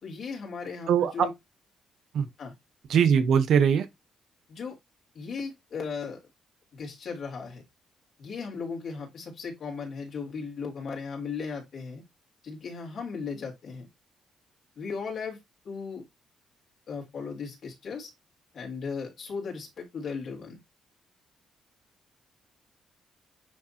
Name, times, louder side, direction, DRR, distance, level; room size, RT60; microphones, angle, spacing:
voice 1, 0.0-1.3 2.4-2.5 4.5-4.8 5.1-6.2 6.7-7.6 8.2-12.0 12.4-13.9 14.8-15.4 15.7-16.0 16.9-18.1 18.5-20.6, left 5 dB, 55° left, 3.5 m, -36 dB
voice 2, 0.9-1.3 2.1-2.3 2.9-3.9, right 7 dB, 70° right, 1.0 m, -21 dB
9.4 x 3.7 x 2.9 m
cardioid pair, 90°, 0 cm